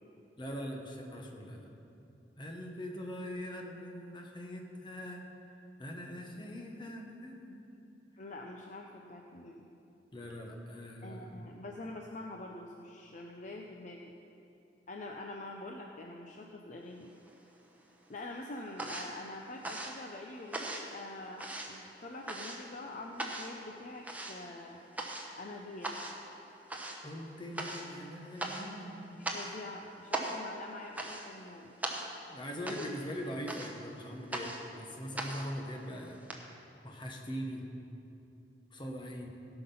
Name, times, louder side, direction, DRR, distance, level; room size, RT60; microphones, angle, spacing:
voice 1, 0.4-1.7 2.4-5.3 5.8-7.8 10.1-11.4 27.0-29.2 32.3-36.2 36.8-37.7 38.7-39.3, equal, 25° left, 1 dB, 1.2 m, -42 dB
voice 2, 8.2-9.7 11.0-14.1 14.9-17.1 18.1-24.8 25.4-26.0 29.2-31.7 32.7-32.8, left 2 dB, 45° left, 1 dB, 0.6 m, -45 dB
sound 1, 17.0-17.8 18.1-36.4, right 1 dB, 10° right, 1.0 m, -41 dB
17.5 x 5.9 x 5.5 m, 2.7 s
head